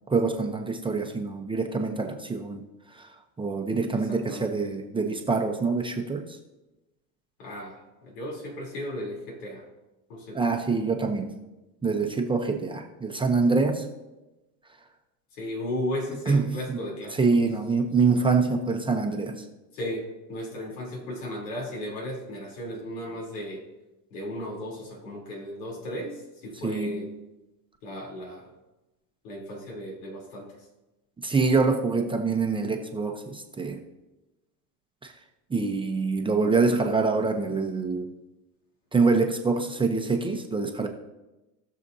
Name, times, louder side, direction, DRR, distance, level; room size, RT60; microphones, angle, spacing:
voice 1, 0.1-2.7 2.9-3.1 3.4-6.3 10.3-11.4 11.8-13.9 16.3-16.8 17.2-19.4 26.6-27.1 31.2-33.8 35.0-35.1 35.5-38.1 38.9-40.9, right 4 dB, 10° right, 3 dB, 0.7 m, -25 dB
voice 2, 3.9-4.7 7.4-9.6 10.1-10.4 15.3-17.2 18.0-18.1 19.7-23.6 24.1-27.1 27.8-28.5 29.2-30.6, left 1 dB, 85° left, -1 dB, 3.5 m, -35 dB
18.5 x 6.7 x 2.7 m, 1.0 s
supercardioid pair, 130°, 45 cm